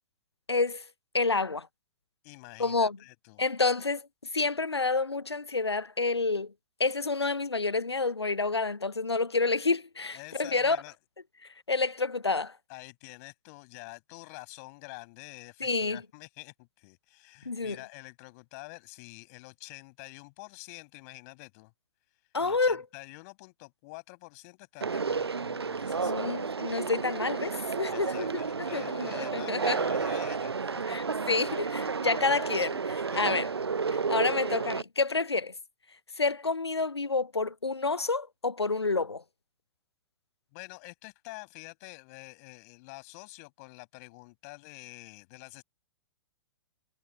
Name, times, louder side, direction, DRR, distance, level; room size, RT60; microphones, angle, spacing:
voice 1, 0.5-0.8 1.1-1.7 2.6-3.0 3.4-4.0 4.3-6.5 6.8-10.8 11.7-12.5 15.6-16.0 17.5-17.8 22.3-22.8 26.0-28.3 28.7-29.8 30.9-33.5 34.1-35.5 36.2-39.2, left 3 dB, 90° left, 0.5 m, -29 dB
voice 2, 2.2-3.4 10.1-10.9 12.7-21.7 22.4-26.3 27.9-31.0 32.0-32.1 33.1-33.5 40.5-45.6, left 28 dB, 40° left, 7.9 m, -47 dB
Conversation, 24.8-34.8, right 5 dB, 80° right, 0.7 m, -31 dB
figure-of-eight pair, 110°, 13 cm